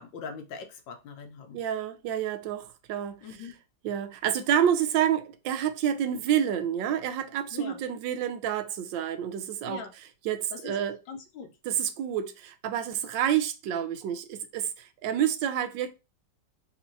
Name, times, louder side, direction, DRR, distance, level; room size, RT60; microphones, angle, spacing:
voice 1, 0.0-1.6 3.2-3.5 7.5-7.8 9.6-9.9 10.5-10.8 11.1-11.5, left 5 dB, 85° left, 1.5 m, -41 dB
voice 2, 1.5-3.2 3.8-9.8 10.2-11.0 11.6-15.9, right 9 dB, 85° right, 1.3 m, -28 dB
4.2 x 2.9 x 2.6 m
omnidirectional pair, 2.0 m